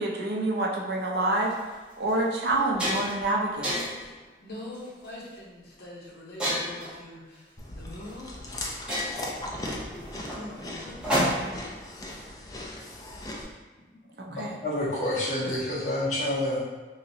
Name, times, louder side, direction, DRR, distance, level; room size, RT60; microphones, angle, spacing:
voice 1, 0.0-1.6 2.0-3.7 14.3-14.6 15.4-15.5, right 2 dB, 65° right, -1 dB, 0.6 m, -27 dB
sound 1, 1.3-1.5 2.1-2.2 2.5-3.2 3.6-4.1 4.7-5.0 6.4-6.9 8.1-8.2 8.5-8.6 8.9-11.7, equal, 5° right, 1.0 m, -30 dB
voice 2, 3.9-8.4 9.4-9.8 10.3-11.2, left 1 dB, 70° left, -4 dB, 0.9 m, -44 dB
Chewing mastication, 7.6-13.4, left 1 dB, 20° left, 0.3 m, -38 dB
voice 3, 14.2-16.6, left 1 dB, 40° left, -8 dB, 1.1 m, -28 dB
3.8 x 3.0 x 2.7 m, 1.3 s
head